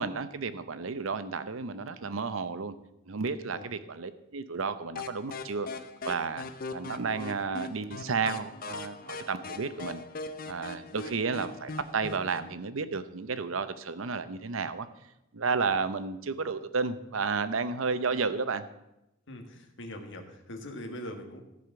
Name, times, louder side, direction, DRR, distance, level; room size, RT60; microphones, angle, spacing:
voice 1, 0.0-2.7 3.1-5.7 6.0-6.5 6.7-10.0 10.4-14.9 15.3-18.6, right 4 dB, 80° right, 12 dB, 0.7 m, -32 dB
sound 1, 5.0-12.5, left 3 dB, 45° left, 0.7 m, -41 dB
voice 2, 19.3-21.4, left 1 dB, 65° left, 3 dB, 1.6 m, -42 dB
14.5 x 5.0 x 7.0 m, 0.90 s
head